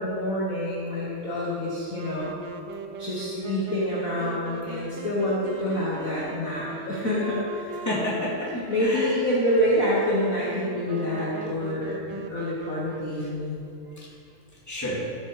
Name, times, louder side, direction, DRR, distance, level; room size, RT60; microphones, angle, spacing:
voice 1, 0.0-2.4 3.0-7.7 8.7-13.6, left 1 dB, 45° left, -6 dB, 1.6 m, -27 dB
Wind instrument woodwind instrument, 1.9-13.6, right 5 dB, 70° right, 1.2 m, -40 dB
voice 2, 4.4-5.0 7.8-8.5 8.8-9.2 13.2-13.3 14.0-14.1 14.7-15.0, left 1 dB, 10° left, -7 dB, 2.2 m, -31 dB
13.0 x 6.6 x 4.9 m, 2.6 s
omnidirectional pair, 2.4 m